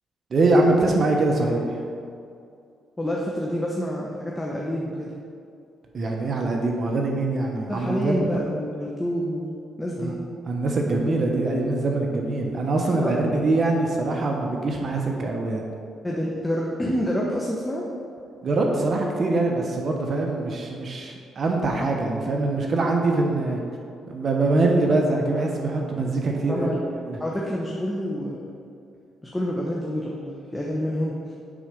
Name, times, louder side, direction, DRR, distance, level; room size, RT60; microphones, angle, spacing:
voice 1, 0.3-1.8 5.9-8.3 10.0-10.1 10.5-15.7 18.4-23.6 24.1-26.7 27.1-27.2, right 2 dB, 45° right, 1 dB, 1.0 m, -23 dB
voice 2, 3.0-5.1 7.7-10.2 13.0-13.1 16.0-17.8 26.5-26.8 27.2-28.5 29.2-31.3, equal, 15° left, -3 dB, 1.0 m, -28 dB
9.0 x 4.3 x 5.2 m, 2.4 s
cardioid pair, 90°, 0 cm